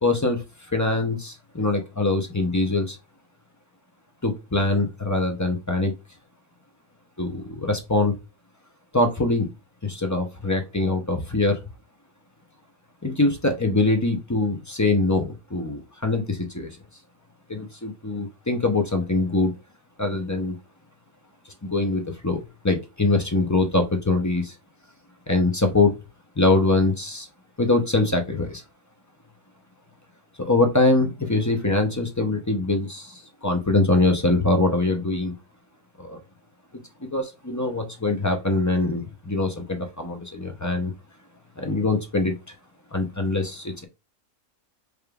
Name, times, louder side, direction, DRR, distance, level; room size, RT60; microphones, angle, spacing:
voice 1, 0.0-3.0 4.2-5.9 7.2-8.2 8.9-9.5 9.8-11.6 13.0-16.7 17.5-19.5 20.0-20.6 21.6-24.5 25.3-25.9 26.4-27.3 27.6-28.6 30.4-35.3 36.0-36.2 37.1-40.9 41.6-42.5 42.9-43.9, left 2 dB, 25° left, 4 dB, 0.4 m, -23 dB
5.0 x 3.1 x 2.3 m, 0.25 s
omnidirectional pair, 1.4 m